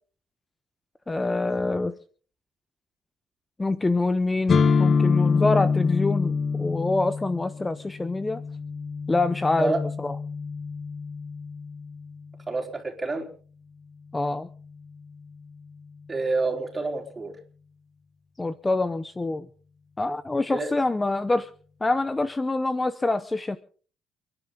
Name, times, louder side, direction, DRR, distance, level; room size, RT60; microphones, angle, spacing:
voice 1, 1.1-1.9 3.6-8.4 9.1-10.2 14.1-14.5 18.4-19.5 20.0-21.5 21.8-23.6, left 2 dB, 15° left, 13 dB, 0.7 m, -25 dB
sound 1, 4.5-12.3, left 5 dB, 40° left, 1.1 m, -26 dB
voice 2, 12.5-13.3 16.1-17.3 20.5-20.7, right 3 dB, 20° right, 2 dB, 4.4 m, -28 dB
29.5 x 11.0 x 3.9 m, 0.42 s
cardioid pair, 135°, 0 cm